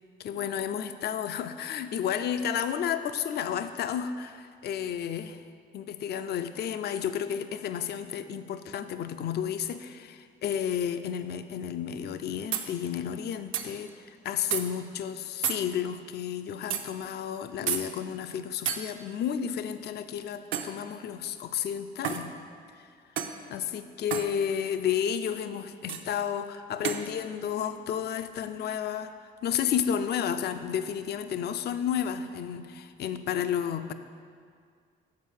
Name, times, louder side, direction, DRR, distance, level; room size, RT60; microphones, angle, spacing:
voice 1, 0.2-5.4 5.7-22.3 22.8-22.9 23.5-33.9, left 8 dB, 55° left, 10 dB, 0.4 m, -32 dB
sound 1, 12.0-12.1 12.5-12.7 13.5-13.7 14.5-14.6 15.4-15.6 16.7-16.8 17.7-17.8 18.7-18.8 20.5-20.8 22.0-22.3 23.2-23.4 24.1-24.3 25.9-26.0 26.8-27.0, right 9 dB, 75° right, 0.6 m, -30 dB
7.3 x 4.6 x 6.4 m, 2.1 s
cardioid pair, 90°, 20 cm